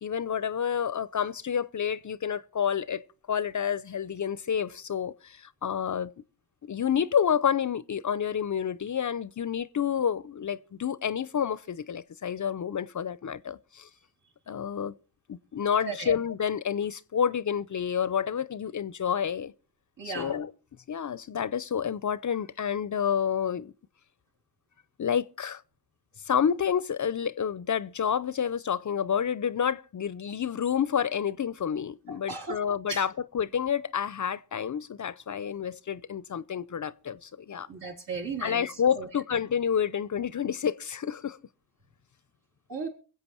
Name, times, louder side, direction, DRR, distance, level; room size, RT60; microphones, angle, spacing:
voice 1, 0.0-3.0 3.3-6.1 6.6-13.9 14.5-14.9 15.3-19.5 20.0-20.5 20.9-23.7 25.0-25.6 26.3-37.7 38.4-41.4, left 8 dB, 40° left, 0.7 m, -29 dB
voice 2, 20.0-20.4 32.1-32.6 32.9-33.0 37.7-39.1 42.7-42.9, right 4 dB, 65° right, 4.4 m, -36 dB
22.5 x 7.9 x 4.5 m
supercardioid pair, 45°, 45 cm